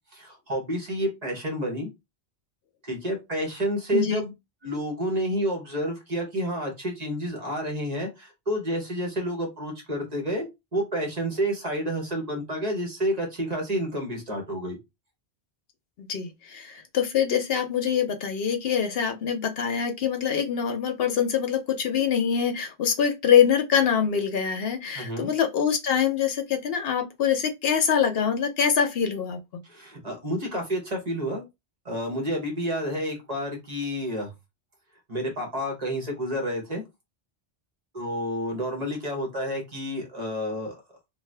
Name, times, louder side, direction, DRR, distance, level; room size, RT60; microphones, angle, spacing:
voice 1, 0.1-1.9 2.8-4.3 4.6-14.8 24.9-25.3 29.6-31.4 31.8-34.3 35.1-36.8 37.9-40.8, equal, 40° right, 1.0 m, -29 dB
voice 2, 16.0-29.4, left 8 dB, 70° left, 0.8 m, -24 dB
2.5 x 2.4 x 3.2 m
omnidirectional pair, 1.1 m